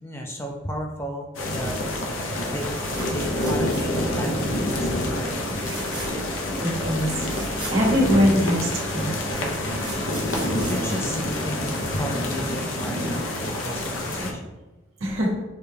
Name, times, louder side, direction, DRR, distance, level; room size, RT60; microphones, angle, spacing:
voice 1, 0.0-1.3 1.5-1.9 2.4-5.6 10.7-14.5, equal, 10° left, 2 dB, 0.4 m, -34 dB
sound 1, 1.3-14.3, left 1 dB, 70° left, 0.7 m, -27 dB
sound 2, 2.5-4.2 4.5-4.9 5.5-6.3 6.7-6.8 7.0-8.5 9.3-11.8 13.7-13.9 14.2-14.3, right 3 dB, 20° right, 0.8 m, -40 dB
voice 2, 6.6-9.2 15.0-15.3, equal, 85° right, -4 dB, 1.3 m, -23 dB
6.4 x 2.2 x 3.4 m, 1.1 s
head